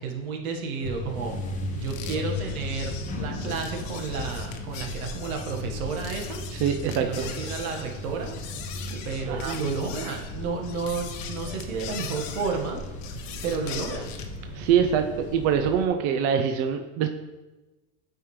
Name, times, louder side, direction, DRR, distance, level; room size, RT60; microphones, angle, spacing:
voice 1, 0.0-6.4 7.0-8.4 9.0-12.8 13.4-14.1, right 4 dB, 75° right, 2 dB, 1.5 m, -32 dB
sound 1, 0.8-15.9, left 1 dB, 20° left, 0.6 m, -36 dB
sound 2, 1.8-14.4, left 7 dB, 60° left, 1.0 m, -41 dB
voice 2, 6.6-7.3 8.7-9.6 14.5-17.1, right 8 dB, 40° right, 7 dB, 0.4 m, -25 dB
9.0 x 5.0 x 3.2 m, 1.1 s
supercardioid pair, 135°, 43 cm